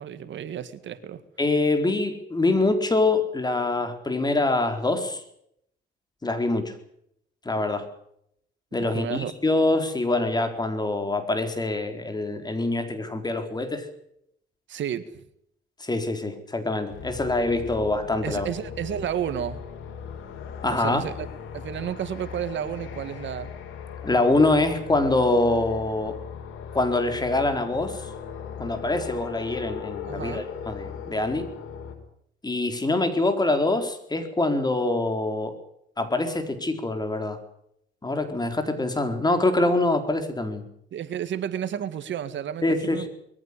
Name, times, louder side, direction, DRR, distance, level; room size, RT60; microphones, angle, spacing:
voice 1, 0.0-1.2 8.8-9.3 14.7-15.0 18.2-19.6 20.7-21.3 21.5-23.5 30.0-30.5 40.9-43.1, right 9 dB, 70° right, 12 dB, 1.8 m, -31 dB
voice 2, 1.4-5.2 6.2-6.7 7.4-7.9 8.7-13.9 15.8-18.5 20.6-21.0 24.0-26.2 26.7-28.0 28.6-31.5 32.4-35.6 36.0-37.4 38.0-40.6 42.6-43.1, left 2 dB, 20° left, 7 dB, 4.3 m, -24 dB
sound 1, 16.9-32.0, left 7 dB, 90° left, 4.6 m, -38 dB
22.0 x 15.0 x 10.0 m, 0.73 s
cardioid pair, 90°, 20 cm